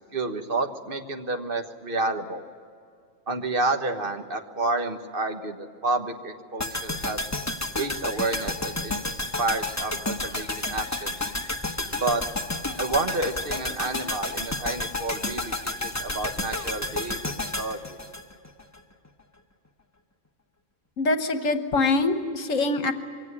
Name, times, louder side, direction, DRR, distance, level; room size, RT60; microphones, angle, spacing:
voice 1, 0.1-2.4 3.3-7.2 7.8-9.0 9.4-11.2 12.0-12.2 12.8-18.0, right 2 dB, 45° right, 6 dB, 1.5 m, -30 dB
sound 1, 6.6-18.8 19.1-19.2, left 2 dB, 15° left, 1.0 m, -31 dB
voice 2, 21.0-22.9, left 3 dB, 70° left, 8 dB, 1.5 m, -24 dB
23.0 x 17.5 x 9.9 m, 2.4 s
omnidirectional pair, 1.4 m